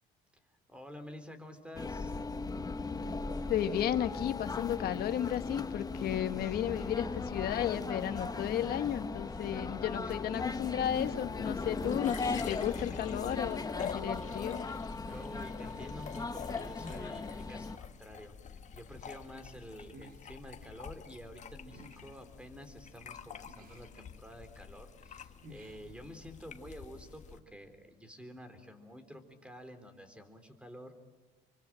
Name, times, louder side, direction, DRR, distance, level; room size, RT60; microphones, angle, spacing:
voice 1, 0.7-2.2 10.0-10.1 11.1-11.2 15.1-30.9, equal, 5° right, 9 dB, 3.9 m, -49 dB
sound 1, 1.7-17.8, left 4 dB, 20° left, 1.3 m, -38 dB
voice 2, 3.5-14.6, left 10 dB, 65° left, 9 dB, 1.5 m, -34 dB
sound 2, 10.8-26.6, equal, 60° right, 3.3 m, -59 dB
sound 3, 11.2-27.4, left 7 dB, 45° left, 1.5 m, -48 dB
26.5 x 24.0 x 9.1 m, 1.2 s
cardioid pair, 110°, 17 cm